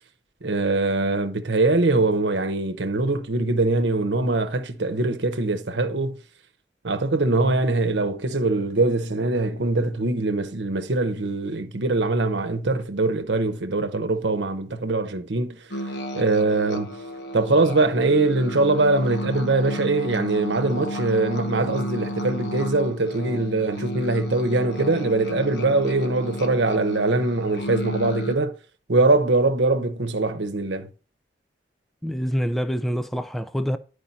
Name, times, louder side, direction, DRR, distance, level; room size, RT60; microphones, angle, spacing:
voice 1, 0.4-6.2 6.8-15.6 16.1-17.0 17.3-28.6 28.9-30.9, right 2 dB, 80° right, 0.9 m, -22 dB
sound 1, 15.7-28.4, equal, 75° left, 1.3 m, -33 dB
voice 2, 32.0-33.8, equal, ahead, 0.4 m, -26 dB
10.0 x 5.0 x 4.1 m
head